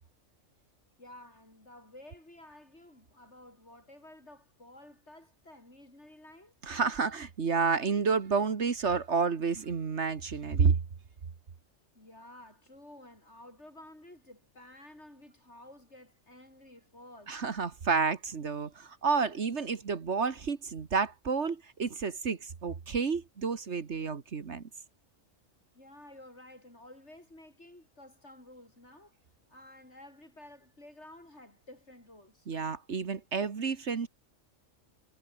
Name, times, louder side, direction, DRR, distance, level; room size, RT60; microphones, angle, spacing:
voice 1, 1.0-6.5 11.9-17.4 25.7-29.2 29.5-32.5, left 1 dB, 60° left, 8.5 m, -53 dB
voice 2, 6.6-10.8 17.3-24.7 32.5-34.1, right 5 dB, 60° right, 1.8 m, -30 dB
omnidirectional pair, 1.3 m